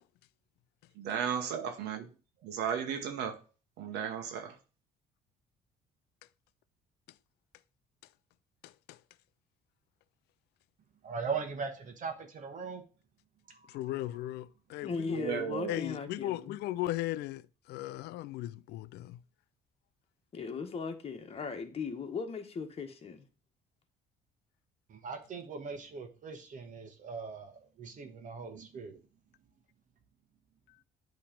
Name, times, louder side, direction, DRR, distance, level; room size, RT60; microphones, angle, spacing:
voice 1, 1.0-2.1 2.4-3.4 3.8-4.6 15.1-15.8, right 8 dB, 80° right, 1.0 m, -35 dB
voice 2, 8.6-9.0 13.7-15.2 15.7-17.4 17.7-19.2, left 15 dB, 80° left, 0.4 m, -37 dB
voice 3, 11.0-12.8 13.5-13.8 24.9-29.0, right 5 dB, 50° right, 1.1 m, -40 dB
voice 4, 14.8-16.6 20.3-23.3, left 5 dB, 35° left, 1.3 m, -38 dB
8.6 x 3.2 x 5.0 m
cardioid pair, 110°, 17 cm